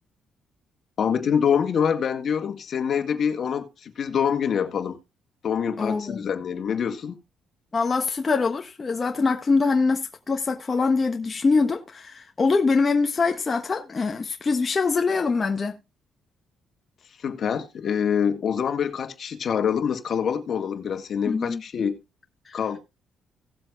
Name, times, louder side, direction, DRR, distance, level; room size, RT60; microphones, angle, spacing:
voice 1, 1.0-5.0 5.4-7.2 17.2-22.0 22.5-22.8, left 7 dB, 55° left, 1.9 m, -25 dB
voice 2, 5.8-6.3 7.7-15.8 21.3-21.6 22.5-22.6, left 4 dB, 35° left, 1.1 m, -23 dB
18.0 x 7.5 x 2.4 m
cardioid pair, 90°, 0 cm